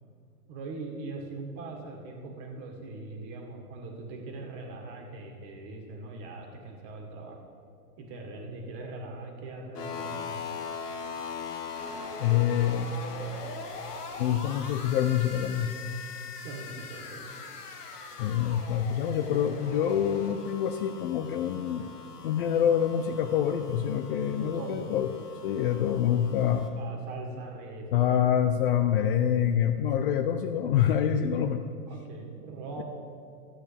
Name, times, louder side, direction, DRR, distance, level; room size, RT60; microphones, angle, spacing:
voice 1, 0.5-7.4 8.0-10.4 16.4-17.3 18.7-18.9 24.3-24.9 26.7-28.1 31.9-32.8, right 3 dB, 40° right, 1 dB, 1.8 m, -41 dB
sound 1, 9.7-26.7, left 5 dB, 85° left, 1.3 m, -41 dB
voice 2, 12.2-12.9 14.2-15.7 18.2-21.9 22.2-25.1 25.4-26.7 27.9-31.6, left 9 dB, 40° left, 8 dB, 0.4 m, -26 dB
13.0 x 8.7 x 3.4 m, 2.4 s
hypercardioid pair, 120°, 45 cm